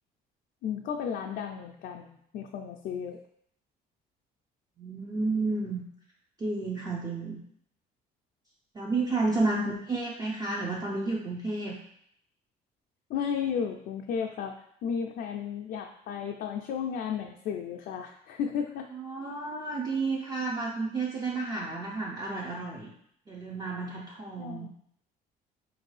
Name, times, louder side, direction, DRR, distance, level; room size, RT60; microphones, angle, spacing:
voice 1, 0.6-3.2 9.6-9.8 13.1-14.6 14.8-18.9 24.4-24.7, left 7 dB, 65° left, 2 dB, 0.4 m, -33 dB
voice 2, 4.8-5.8 6.4-7.4 8.7-11.8 18.9-22.9 23.3-24.7, right 3 dB, 20° right, -3 dB, 0.5 m, -31 dB
4.4 x 2.6 x 3.2 m, 0.69 s
cardioid pair, 110°, 17 cm